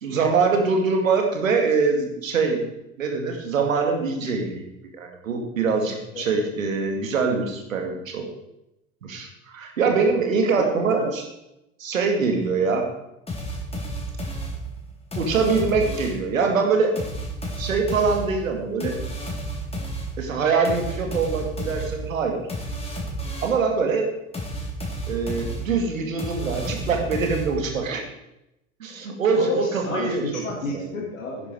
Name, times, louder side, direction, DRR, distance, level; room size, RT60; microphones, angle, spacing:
voice 1, 0.0-2.7 3.0-4.6 4.9-8.3 9.0-11.2 11.8-12.9 15.2-16.9 17.6-19.0 20.2-22.4 23.4-24.1 25.1-28.0 28.8-30.3 30.7-30.9, right 4 dB, 75° right, 3 dB, 2.2 m, -23 dB
voice 2, 10.6-11.1 29.4-31.5, left 2 dB, 80° left, -4 dB, 2.5 m, -31 dB
sound 1, 13.3-16.3 17.0-23.7 24.3-27.8, right 1 dB, 15° left, 3.7 m, -32 dB
11.0 x 10.5 x 4.7 m, 0.88 s
figure-of-eight pair, 70°, 40 cm